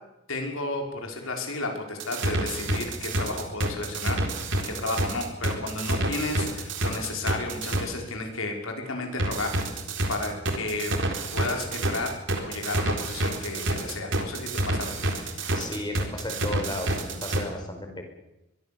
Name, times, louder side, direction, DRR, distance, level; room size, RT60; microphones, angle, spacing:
voice 1, 0.3-4.2 4.6-9.5 10.1-11.0 11.3-15.2, left 2 dB, 80° left, 2 dB, 5.6 m, -32 dB
sound 1, 2.0-7.8 9.2-17.4, right 1 dB, 60° right, 4.0 m, -28 dB
voice 2, 15.5-18.0, left 1 dB, 20° left, 4 dB, 4.9 m, -34 dB
24.0 x 22.5 x 7.1 m, 0.90 s
head